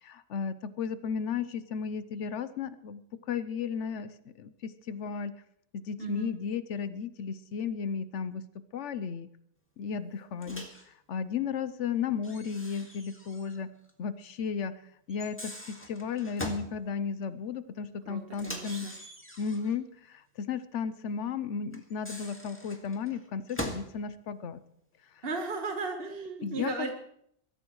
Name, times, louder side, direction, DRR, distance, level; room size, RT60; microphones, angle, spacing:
voice 1, 0.0-5.4 5.7-8.4 8.7-9.3 9.8-13.7 14.0-14.7 15.1-18.9 19.4-24.6 26.4-26.7, left 6 dB, 85° left, 13 dB, 1.1 m, -34 dB
voice 2, 6.0-6.3 18.0-18.9 25.2-26.9, right 3 dB, 55° right, 2 dB, 1.6 m, -35 dB
Microwave oven, 10.4-10.9 12.2-13.6 13.9-14.0 15.1-16.7 18.3-19.8 21.7-23.9, equal, 10° left, 1.9 m, -41 dB
23.5 x 13.5 x 3.1 m, 0.72 s
omnidirectional pair, 1.2 m